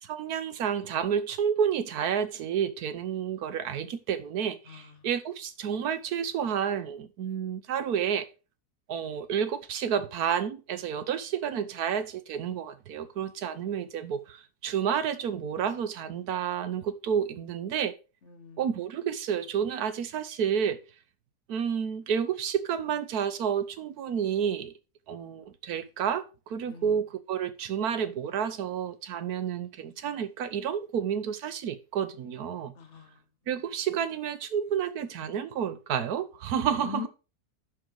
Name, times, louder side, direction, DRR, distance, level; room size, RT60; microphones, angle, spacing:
voice 1, 0.0-8.3 8.9-17.9 18.6-20.8 21.5-24.7 25.1-32.7 33.5-37.1, right 8 dB, 75° right, 1.3 m, -30 dB
voice 2, 18.3-18.6 26.7-26.9 32.8-33.2 36.7-37.1, left 6 dB, 55° left, 1.1 m, -41 dB
10.5 x 3.9 x 4.6 m
omnidirectional pair, 1.7 m